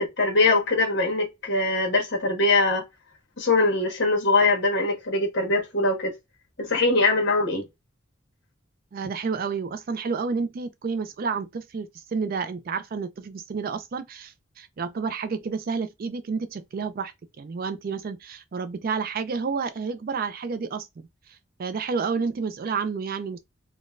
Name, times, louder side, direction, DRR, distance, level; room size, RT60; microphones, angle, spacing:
voice 1, 0.0-2.8 3.4-6.1 6.6-7.6, left 2 dB, 60° left, 1.3 m, -22 dB
voice 2, 8.9-21.1 21.6-23.4, right 5 dB, 45° right, 0.4 m, -30 dB
3.8 x 2.2 x 2.4 m
head